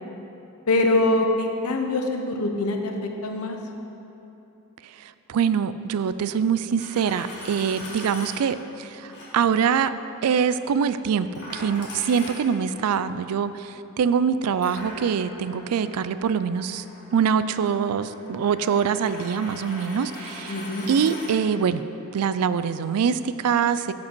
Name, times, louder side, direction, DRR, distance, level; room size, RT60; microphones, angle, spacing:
voice 1, 0.7-3.6 20.5-20.9, left 2 dB, 85° left, 4 dB, 0.9 m, -24 dB
voice 2, 5.0-9.9 10.2-16.8 17.1-20.5 20.9-21.8 22.1-23.9, right 7 dB, 80° right, 13 dB, 0.4 m, -24 dB
Coin (dropping), 6.6-8.4 9.1-9.3 11.4-12.8 14.6-21.4, left 1 dB, 50° left, 2.0 m, -40 dB
12.0 x 5.3 x 4.5 m, 2.9 s
head